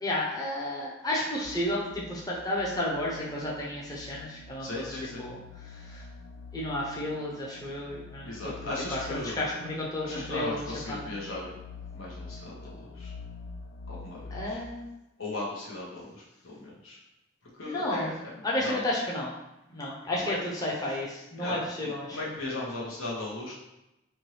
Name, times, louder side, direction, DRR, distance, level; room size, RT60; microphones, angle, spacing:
voice 1, 0.0-4.8 5.2-5.4 5.7-6.0 6.5-8.5 8.9-11.1 14.3-14.9 17.7-18.1 18.4-19.3 19.7-22.2, left 1 dB, 20° left, -5 dB, 0.6 m, -32 dB
sound 1, 1.4-14.5, left 4 dB, 70° left, 0.4 m, -46 dB
voice 2, 4.6-5.2 8.2-9.5 10.0-11.6 11.9-13.1 13.9-14.6 15.2-17.0 17.5-18.8 20.2-20.4 21.4-21.6 21.8-23.5, left 2 dB, 90° left, -5 dB, 1.3 m, -37 dB
4.5 x 2.7 x 3.2 m, 0.93 s
head